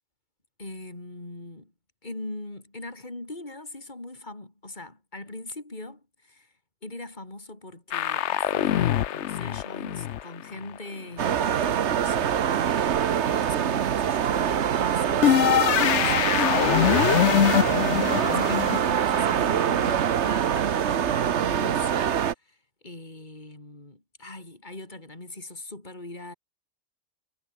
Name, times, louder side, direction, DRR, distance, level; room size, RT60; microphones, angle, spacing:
voice 1, 0.6-1.7 2.0-6.5 6.8-12.4 13.2-16.4 17.3-26.3, left 2 dB, 40° left, 4.5 m, -41 dB
sound 1, 7.9-10.8 15.2-19.9, left 11 dB, 80° left, 1.0 m, -24 dB
sound 2, 11.2-22.3, right 9 dB, 75° right, 1.2 m, -24 dB
omnidirectional pair, 1.2 m